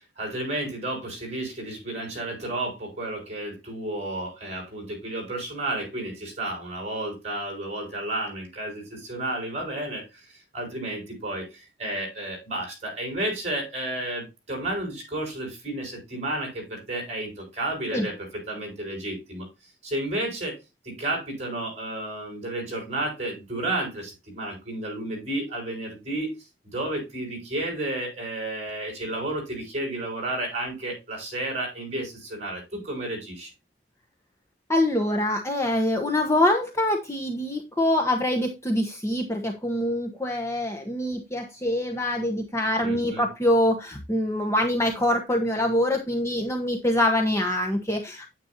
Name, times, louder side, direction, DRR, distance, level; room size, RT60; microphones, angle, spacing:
voice 1, 0.2-10.2 10.5-19.5 19.8-20.6 20.8-26.3 26.6-33.5 42.8-43.3, right 1 dB, 35° right, 6.6 m, -32 dB
voice 2, 34.7-48.3, left 1 dB, 15° left, 1.1 m, -24 dB
9.4 x 8.7 x 2.9 m
head